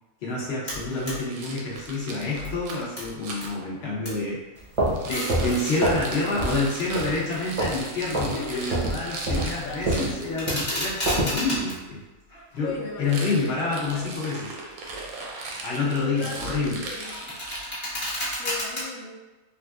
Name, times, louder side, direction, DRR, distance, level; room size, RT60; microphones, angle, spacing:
voice 1, 0.2-4.4 5.0-12.0 12.5-14.5 15.6-16.8, left 3 dB, 55° left, -5 dB, 0.9 m, -28 dB
sound 1, 0.7-1.2 1.5-3.5 3.8-4.2 4.9-5.8 6.5-8.6 8.9-9.3 9.6-11.8 12.3-13.2 13.7-14.0 14.6-15.1 15.5-18.8, equal, 25° left, 1.0 m, -34 dB
Rattle, 0.9-3.5 4.9-10.3 13.0-18.0, right 2 dB, 85° right, 1.0 m, -38 dB
sound 2, 4.6-6.1 6.4-6.7 6.9-7.8 8.1-8.4 8.7-11.4, right 1 dB, 45° right, 0.4 m, -26 dB
voice 2, 5.3-6.0 8.3-9.3 9.6-10.2 10.7-10.8 12.6-14.4 15.9-17.4 18.4-19.2, left 3 dB, 85° left, 0 dB, 1.1 m, -38 dB
3.5 x 2.4 x 2.3 m, 1.2 s
omnidirectional pair, 1.5 m